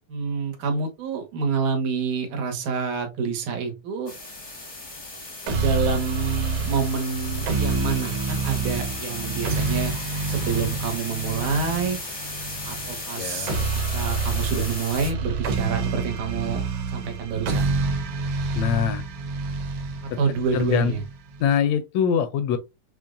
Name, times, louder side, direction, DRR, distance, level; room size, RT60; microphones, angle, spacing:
voice 1, 0.1-4.1 5.5-9.9 10.3-12.0 12.7-13.5 13.9-16.6 16.9-17.7 20.0-21.0, right 5 dB, 80° right, 2.6 m, -27 dB
sound 1, 4.1-15.1, left 2 dB, 45° left, 0.4 m, -35 dB
sound 2, 5.5-21.5, right 4 dB, 60° right, 1.8 m, -28 dB
voice 2, 13.1-13.7 18.5-19.0 20.1-20.2 20.5-20.9 21.4-22.6, left 8 dB, 80° left, 1.6 m, -24 dB
6.9 x 3.0 x 2.5 m
omnidirectional pair, 3.4 m